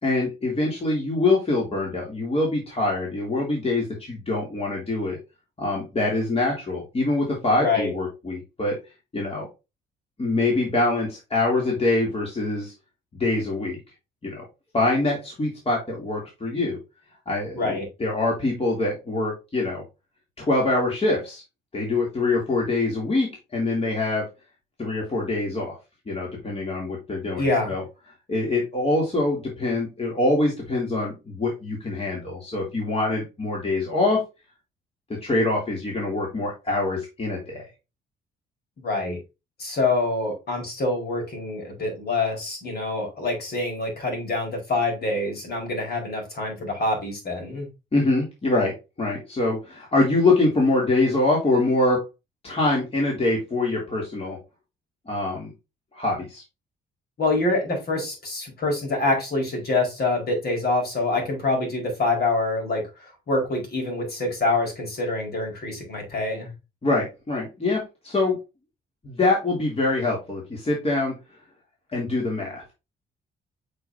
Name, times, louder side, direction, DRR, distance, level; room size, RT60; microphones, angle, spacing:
voice 1, 0.0-5.2 5.6-8.8 9.1-9.5 10.2-12.7 13.1-13.8 14.2-14.4 14.7-16.8 17.3-19.8 20.4-21.4 21.7-24.3 24.8-25.8 26.1-27.8 28.3-34.2 35.1-37.7 47.9-52.0 52.4-54.4 55.1-55.5 55.9-56.4 66.8-68.4 69.0-71.1 71.9-72.7, left 2 dB, 30° left, -2 dB, 2.7 m, -24 dB
voice 2, 7.6-7.9 17.5-17.8 27.4-27.8 38.8-39.2 39.6-47.7 57.2-66.5, left 2 dB, 55° left, 1 dB, 4.5 m, -26 dB
8.0 x 5.2 x 2.7 m, 0.26 s
cardioid pair, 90°, 20 cm